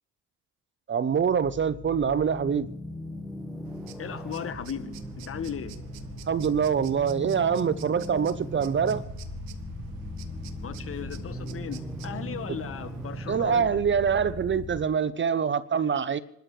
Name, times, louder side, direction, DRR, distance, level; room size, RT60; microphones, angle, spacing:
voice 1, 0.9-2.7 6.3-9.0 13.3-16.2, right 7 dB, 35° right, 0.8 m, -25 dB
sound 1, 1.1-14.8, left 1 dB, ahead, 1.5 m, -39 dB
sound 2, 3.6-13.5, right 8 dB, 80° right, 1.3 m, -47 dB
voice 2, 4.0-4.9 5.2-5.7 10.6-13.8, left 8 dB, 40° left, 1.4 m, -36 dB
28.0 x 13.0 x 3.3 m
supercardioid pair, 80°, 34 cm